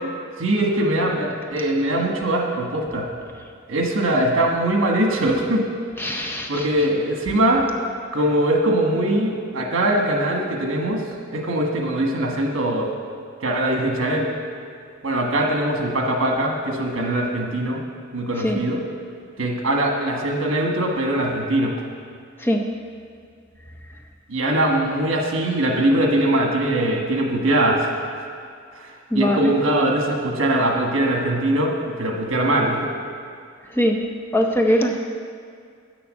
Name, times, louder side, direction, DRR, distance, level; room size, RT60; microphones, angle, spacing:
voice 1, 0.4-3.1 3.7-5.6 6.1-7.7 8.1-11.0 11.3-12.9 13.4-14.3 15.0-17.8 18.1-18.8 19.4-21.7 24.3-27.9 28.7-32.9, right 1 dB, 70° right, 1 dB, 1.4 m, -21 dB
voice 2, 6.0-6.7 18.4-18.6 22.4-22.6 29.1-29.5 33.7-34.0 34.3-35.0, equal, 10° left, 1 dB, 0.6 m, -21 dB
9.3 x 6.9 x 6.5 m, 2.3 s
head